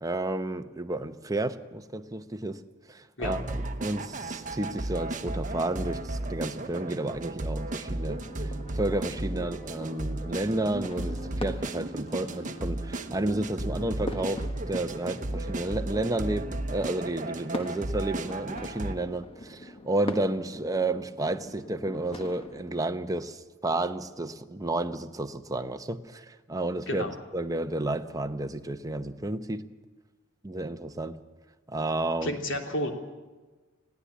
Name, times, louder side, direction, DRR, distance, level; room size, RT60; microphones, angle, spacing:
voice 1, 0.0-2.6 2.9-27.0 27.3-29.7 30.4-31.2 31.7-32.3, right 2 dB, 15° right, 0.8 m, -31 dB
sound 1, 3.2-18.9, right 2 dB, 35° right, 1.0 m, -34 dB
sound 2, 8.0-22.8, left 1 dB, 25° left, 1.5 m, -44 dB
voice 2, 32.2-32.9, left 1 dB, 60° left, 2.9 m, -31 dB
20.5 x 15.5 x 8.4 m
head